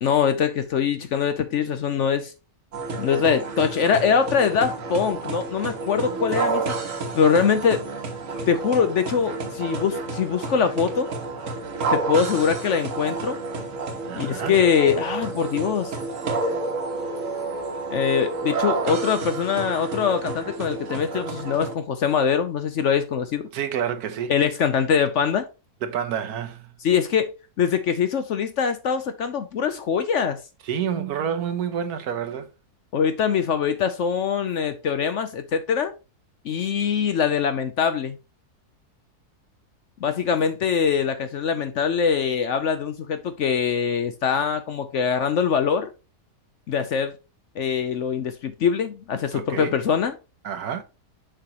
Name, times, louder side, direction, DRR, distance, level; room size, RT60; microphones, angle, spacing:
voice 1, 0.0-2.3 3.0-7.8 8.5-11.1 11.9-13.4 14.2-16.0 17.9-23.5 24.3-25.5 26.8-27.3 27.6-30.4 32.9-35.9 36.4-38.2 40.0-45.9 46.7-47.1 47.6-50.1, left 7 dB, 60° left, 0.8 m, -23 dB
sound 1, 2.7-21.7, right 3 dB, 55° right, 1.5 m, -30 dB
voice 2, 14.1-14.6 23.5-24.4 25.8-26.7 30.6-32.5 49.3-49.8 50.4-50.8, right 8 dB, 75° right, 1.3 m, -28 dB
6.8 x 5.6 x 2.9 m
omnidirectional pair, 1.7 m